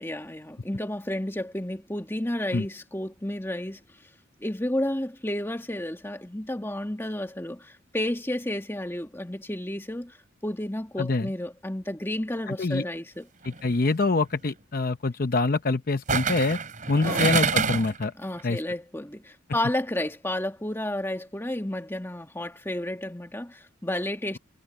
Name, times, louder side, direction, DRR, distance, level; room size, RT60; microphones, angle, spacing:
voice 1, 0.0-3.8 4.4-10.2 10.4-13.3 17.1-17.4 18.2-24.4, left 1 dB, 10° left, 1.7 m, -31 dB
voice 2, 11.0-11.3 12.5-12.8 13.4-16.6 16.9-18.1 18.4-18.6, left 3 dB, 45° left, 0.7 m, -25 dB
sound 1, 13.4-13.7 16.1-18.0 18.4-18.5, right 5 dB, 40° right, 5.9 m, -26 dB
head